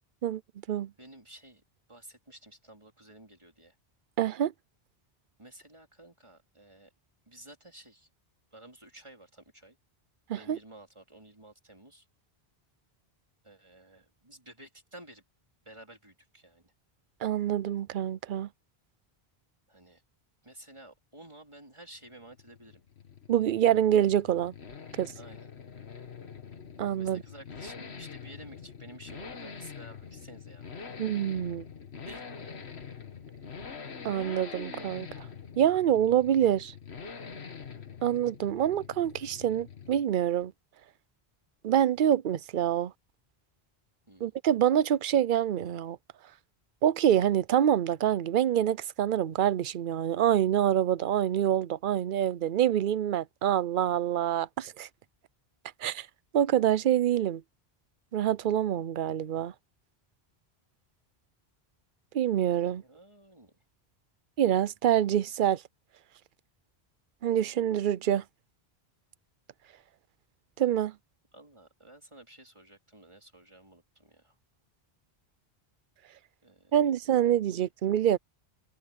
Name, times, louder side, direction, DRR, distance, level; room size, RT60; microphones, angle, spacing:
voice 1, 1.0-1.6 1.9-3.7 5.4-6.9 7.3-8.1 8.5-9.8 10.4-12.1 13.4-15.2 15.6-16.7 19.7-20.0 20.4-22.8 25.2-25.5 26.9-31.0 32.0-32.6 44.1-44.4 62.4-62.5 62.8-63.6 71.3-74.3 76.4-77.0 77.2-77.6, right 1 dB, 30° right, 4.1 m, -52 dB
voice 2, 4.2-4.5 10.3-10.6 17.2-18.5 23.3-24.5 24.9-25.1 26.8-27.2 31.0-31.6 34.0-35.3 35.6-36.7 38.0-40.5 41.6-42.9 44.2-46.0 46.8-54.9 55.8-56.1 56.3-57.4 58.1-59.5 62.1-62.8 64.4-65.6 67.2-68.2 70.6-70.9 76.7-78.2, right 10 dB, 55° right, 0.7 m, -26 dB
Accelerating revving vroom, 22.0-40.2 40.4-40.5, left 6 dB, 85° left, 1.8 m, -45 dB
omnidirectional pair, 1.1 m